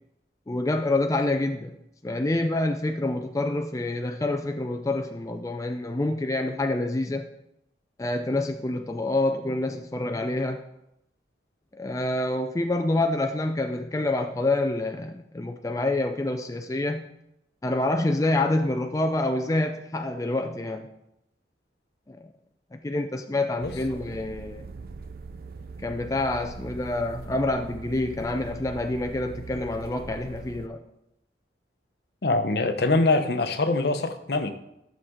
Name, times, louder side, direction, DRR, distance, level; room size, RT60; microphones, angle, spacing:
voice 1, 0.5-1.8 2.0-7.3 8.0-10.6 11.8-17.1 17.6-20.9 22.1-22.3 22.7-24.6 25.8-30.8, left 2 dB, 20° left, 0.4 m, -27 dB
sound 1, 23.6-30.7, right 4 dB, 55° right, 0.5 m, -41 dB
voice 2, 32.2-34.5, left 2 dB, 60° left, 0.8 m, -23 dB
12.5 x 6.6 x 3.7 m
head